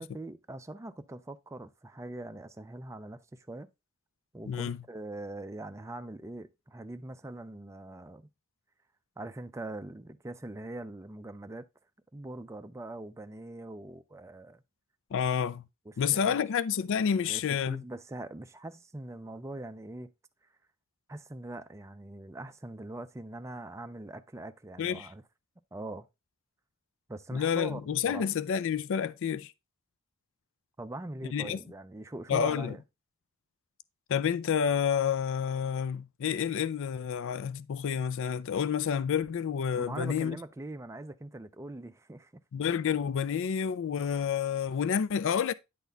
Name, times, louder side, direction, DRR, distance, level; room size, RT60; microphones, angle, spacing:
voice 1, 0.0-3.7 4.3-8.3 9.2-11.6 12.1-14.6 15.9-16.4 17.0-20.1 21.1-25.2 25.7-26.1 27.1-28.3 30.8-32.8 39.8-42.4, right 2 dB, 15° right, 0.4 m, -42 dB
voice 2, 4.5-4.8 15.1-15.6 16.0-17.8 24.8-25.1 27.3-29.5 31.3-31.6 32.3-32.8 34.1-40.4 42.5-45.5, left 7 dB, 60° left, 0.4 m, -29 dB
9.2 x 4.0 x 3.4 m
head